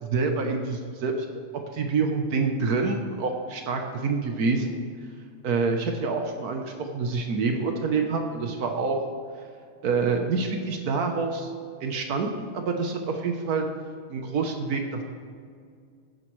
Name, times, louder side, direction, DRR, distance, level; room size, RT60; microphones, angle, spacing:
voice 1, 0.0-1.3 1.7-4.8 5.4-9.0 9.8-11.5 11.8-13.7 14.1-15.0, right 4 dB, 80° right, 3 dB, 1.5 m, -27 dB
16.0 x 9.7 x 3.2 m, 2.2 s
omnidirectional pair, 1.6 m